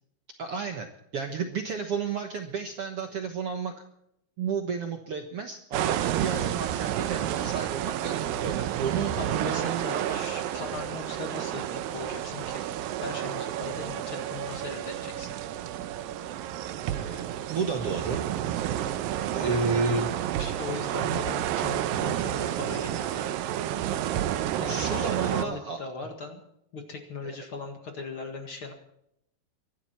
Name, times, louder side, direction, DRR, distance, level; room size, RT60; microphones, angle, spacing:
voice 1, 0.4-3.7 4.4-10.2 16.9-18.2 19.3-20.1 24.6-25.8, right 5 dB, 60° right, 5 dB, 1.7 m, -32 dB
sound 1, 5.7-25.4, right 11 dB, 85° right, 2.6 m, -30 dB
voice 2, 9.2-12.6 13.0-15.3 19.4-19.9 20.4-23.3 24.6-26.4 26.7-28.7, left 4 dB, 45° left, 4 dB, 2.3 m, -39 dB
24.0 x 12.0 x 4.4 m, 0.76 s
omnidirectional pair, 4.0 m